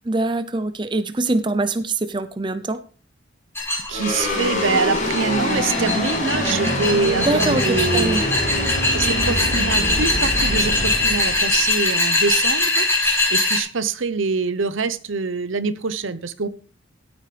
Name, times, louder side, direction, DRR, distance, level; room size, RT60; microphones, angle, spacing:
voice 1, 0.1-2.8 7.2-8.3, right 2 dB, 25° right, 11 dB, 0.6 m, -23 dB
sound 1, 3.6-13.6, left 2 dB, 10° left, 5.2 m, -22 dB
sound 2, 3.9-12.5, left 1 dB, 40° left, 4.1 m, -25 dB
voice 2, 3.9-8.2 8.9-12.9 13.3-16.5, right 4 dB, 75° right, 14 dB, 0.8 m, -24 dB
14.5 x 8.9 x 3.4 m, 0.40 s
head